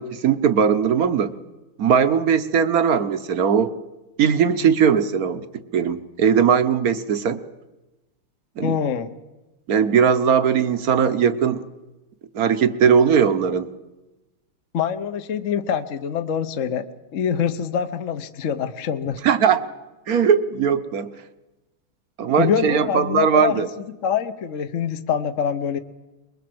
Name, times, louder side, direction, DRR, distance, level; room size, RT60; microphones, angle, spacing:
voice 1, 0.0-1.3 1.8-3.7 4.2-5.4 5.7-7.4 8.6-8.8 9.7-11.6 12.3-13.7 19.2-19.6 20.1-21.1 22.2-23.7, right 7 dB, 55° right, 12 dB, 1.2 m, -19 dB
voice 2, 8.6-9.1 14.7-19.2 22.4-23.7 24.0-25.8, left 8 dB, 50° left, 9 dB, 1.0 m, -25 dB
24.0 x 21.5 x 7.8 m, 1.1 s
omnidirectional pair, 2.4 m